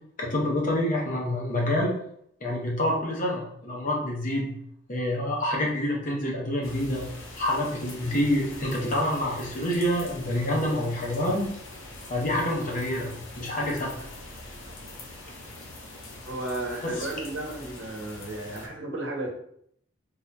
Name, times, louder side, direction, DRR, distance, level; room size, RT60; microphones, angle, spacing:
voice 1, 0.2-2.0 2.4-4.6 4.9-7.1 7.4-11.5 12.1-13.9 16.8-17.1, left 1 dB, 45° left, -2 dB, 0.8 m, -27 dB
sound 1, 6.6-18.7, left 2 dB, 90° left, 0.7 m, -43 dB
voice 2, 16.3-19.3, right 2 dB, 80° right, 0 dB, 0.8 m, -34 dB
3.6 x 2.6 x 2.2 m, 0.68 s
head